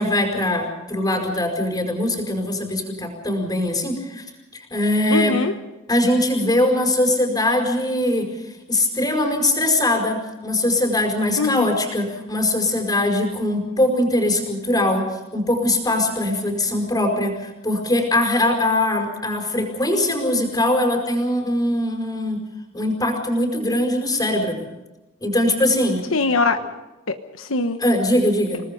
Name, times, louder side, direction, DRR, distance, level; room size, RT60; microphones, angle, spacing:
voice 1, 0.0-4.2 4.5-5.4 5.9-8.3 8.7-22.4 22.7-24.7 25.2-26.0 27.8-28.6, left 1 dB, 20° left, 3 dB, 5.2 m, -21 dB
voice 2, 5.1-5.5 11.4-11.8 26.1-26.6 27.1-27.8, left 3 dB, 75° left, 7 dB, 1.2 m, -22 dB
29.5 x 19.5 x 5.3 m, 1.0 s
head